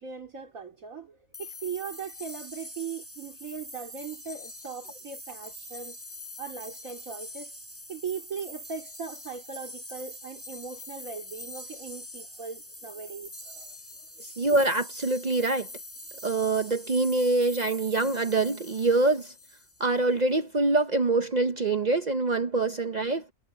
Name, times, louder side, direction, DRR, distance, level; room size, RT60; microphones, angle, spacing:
voice 1, 0.0-6.0 6.4-7.5 7.9-13.7, right 6 dB, 65° right, 3.4 m, -39 dB
sound 1, 1.3-20.0, left 1 dB, 10° left, 4.1 m, -44 dB
voice 2, 14.2-15.7 16.2-19.3 19.8-23.3, right 2 dB, 45° right, 0.6 m, -25 dB
omnidirectional pair, 1.5 m